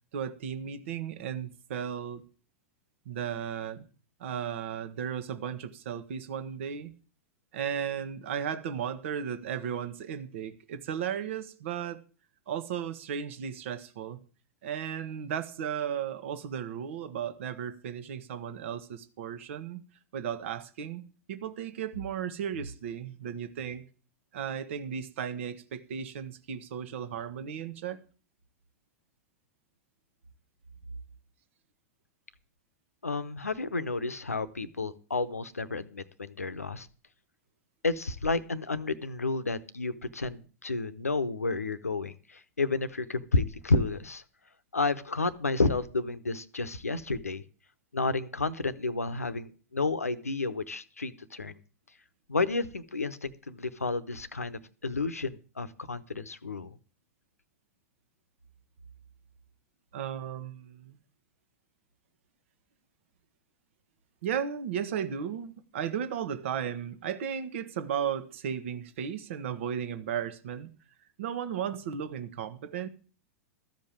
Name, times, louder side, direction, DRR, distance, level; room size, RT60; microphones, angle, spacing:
voice 1, 0.1-2.2 3.0-3.9 4.2-6.9 7.5-12.0 12.5-14.2 14.6-19.8 20.1-23.8 24.3-28.0 59.9-61.0 64.2-70.7 71.2-72.9, right 8 dB, 60° right, 10 dB, 1.1 m, -35 dB
voice 2, 33.0-36.9 37.8-44.2 44.7-47.4 47.9-51.6 52.3-56.7, left 3 dB, 85° left, 14 dB, 0.8 m, -31 dB
13.5 x 5.3 x 8.8 m, 0.38 s
figure-of-eight pair, 95°, 8 cm